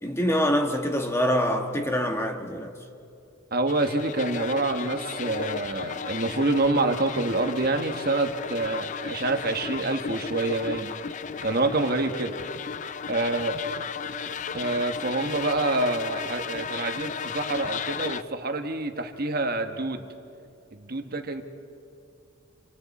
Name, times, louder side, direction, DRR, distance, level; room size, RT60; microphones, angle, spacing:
voice 1, 0.0-2.7, equal, 15° left, 1.4 m, -25 dB
voice 2, 3.5-10.9 11.4-12.3 13.1-13.6 14.5-20.0 20.7-21.4, right 2 dB, 50° right, 1.3 m, -27 dB
sound 1, 3.7-18.2, left 6 dB, 40° left, 0.4 m, -35 dB
29.0 x 25.5 x 4.2 m
head